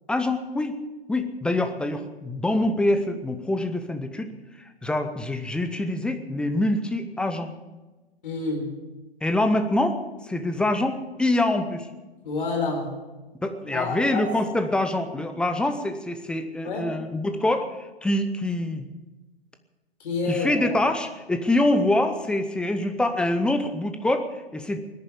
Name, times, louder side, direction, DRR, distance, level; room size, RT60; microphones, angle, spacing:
voice 1, 0.1-0.8 1.1-4.3 4.6-7.5 9.2-11.9 13.4-18.9 20.3-24.8, left 1 dB, 5° left, 8 dB, 0.7 m, -25 dB
voice 2, 8.2-8.7 12.2-12.9 13.7-14.3 16.6-16.8 20.0-20.7, left 3 dB, 55° left, 2 dB, 4.3 m, -28 dB
19.0 x 10.5 x 7.1 m, 1.2 s
figure-of-eight pair, 115°, 31 cm